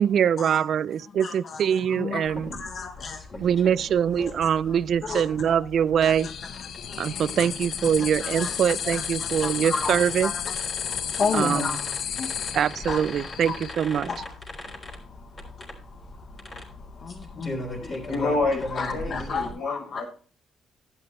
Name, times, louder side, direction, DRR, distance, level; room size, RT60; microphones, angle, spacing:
voice 1, 0.0-2.5 3.4-6.3 7.0-10.3 11.3-11.7 12.5-14.1, right 8 dB, 65° right, 0.4 m, -23 dB
voice 2, 1.2-3.2 5.0-5.3 6.0-6.1 6.6-7.5 7.8-8.6 8.9-12.6 12.9-13.6 14.0-18.1 18.7-20.0, left 5 dB, 50° left, 1.0 m, -34 dB
sound 1, 2.2-19.5, left 1 dB, 35° left, 3.6 m, -40 dB
sound 2, 6.1-13.7, left 9 dB, 65° left, 0.6 m, -33 dB
voice 3, 17.8-20.0, left 3 dB, 85° left, 5.5 m, -29 dB
11.5 x 9.9 x 3.1 m
cardioid pair, 90°, 0 cm